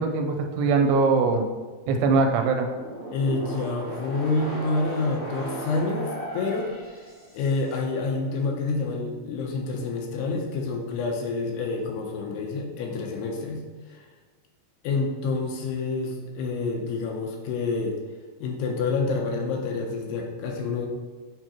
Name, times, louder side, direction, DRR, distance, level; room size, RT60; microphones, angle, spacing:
voice 1, 0.0-1.4 1.9-2.7, right 4 dB, 85° right, 4 dB, 2.7 m, -21 dB
sound 1, 2.7-7.7, right 1 dB, 50° left, 0.7 m, -36 dB
voice 2, 3.1-6.7 7.3-13.6 14.0-14.1 14.8-18.0 18.4-20.9, left 3 dB, 80° left, 1 dB, 2.8 m, -28 dB
7.8 x 4.7 x 2.9 m, 1.4 s
omnidirectional pair, 4.8 m